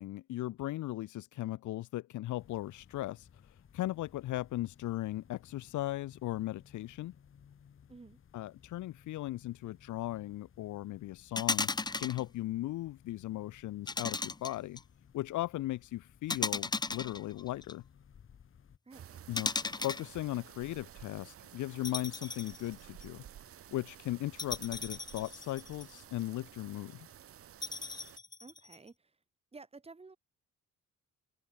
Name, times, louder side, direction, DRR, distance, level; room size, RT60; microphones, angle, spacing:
voice 1, 0.0-7.1 8.3-11.7 12.0-14.8 15.1-17.8 19.3-23.2 23.7-27.1, left 15 dB, 75° left, 1.3 m, -37 dB
sound 1, 2.4-18.8, left 7 dB, 45° left, 2.6 m, -61 dB
sound 2, 11.4-12.2 13.9-14.8 16.3-17.7 19.4-20.1 21.8-22.6 23.0-23.1 24.4-26.0 27.6-28.8, left 3 dB, 15° left, 0.6 m, -36 dB
voice 2, 18.8-19.2 28.4-29.2 29.5-30.2, right 3 dB, 20° right, 3.1 m, -53 dB
sound 3, 18.9-28.2, right 10 dB, 50° right, 1.2 m, -53 dB
open air
cardioid pair, 100°, 30 cm